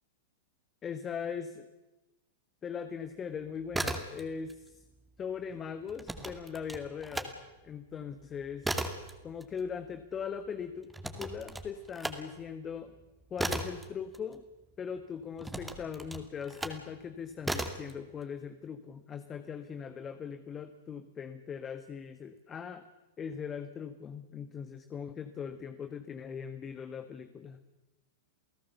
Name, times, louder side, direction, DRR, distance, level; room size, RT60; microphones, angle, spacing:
voice 1, 0.8-1.7 2.6-4.8 5.2-7.4 7.6-8.7 9.2-10.9 11.2-12.9 13.3-14.4 14.8-22.8 23.2-27.6, left 7 dB, 25° left, 10 dB, 1.4 m, -40 dB
sound 1, 3.6-4.6 4.8-7.3 7.7-14.8 15.4-16.9 17.4-17.9, right 1 dB, 5° right, 2.4 m, -37 dB
29.0 x 17.0 x 7.0 m, 1.1 s
hypercardioid pair, 105°, 0 cm